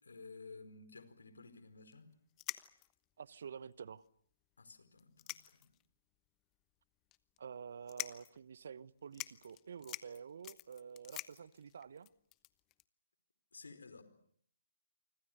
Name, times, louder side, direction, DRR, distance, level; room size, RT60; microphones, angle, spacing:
voice 1, 0.0-2.1 4.6-5.7 13.5-14.0, left 4 dB, 75° left, 11 dB, 4.7 m, -54 dB
sound 1, 1.9-2.0 2.4-3.0 3.7-3.8 4.1-4.2 5.0-5.9 6.3-6.4 7.1-7.4 7.9-8.4 8.8-8.9 9.1-12.8, left 18 dB, 25° left, 1.1 m, -46 dB
voice 2, 3.2-4.0 7.4-12.1, right 7 dB, 55° right, 18 dB, 1.0 m, -49 dB
29.0 x 25.5 x 6.8 m, 0.65 s
figure-of-eight pair, 135°, 0 cm